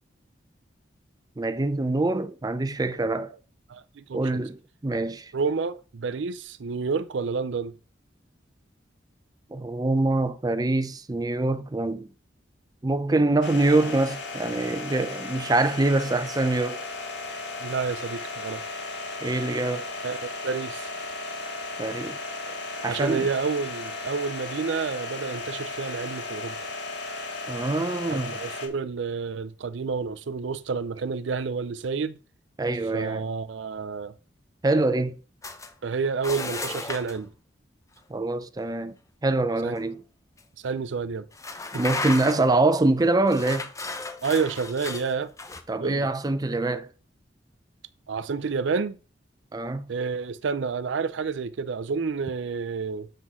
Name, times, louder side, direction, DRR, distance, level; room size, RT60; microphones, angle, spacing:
voice 1, 1.4-3.3 4.1-5.3 9.5-12.1 12.8-16.9 19.2-19.9 21.8-22.2 22.5-22.6 22.8-23.3 27.5-28.4 32.6-33.2 34.6-35.2 38.1-39.0 39.2-40.0 41.7-43.7 45.7-46.9 49.5-49.9, right 2 dB, 20° right, 0.5 m, -25 dB
voice 2, 3.7-4.4 5.3-7.7 17.6-18.6 20.0-20.9 22.8-26.7 28.1-32.2 32.9-34.1 35.8-37.3 39.6-39.7 40.6-41.3 44.2-45.3 45.8-46.1 48.1-49.0 49.9-53.1, right 5 dB, 75° right, 0.5 m, -29 dB
sound 1, 13.4-28.7, left 3 dB, 70° left, 1.6 m, -35 dB
sound 2, 35.4-35.7 36.2-37.2 39.8-39.9 40.4-40.5 41.3-42.6 43.3-45.6, left 3 dB, 15° left, 0.7 m, -34 dB
7.6 x 6.2 x 3.6 m
head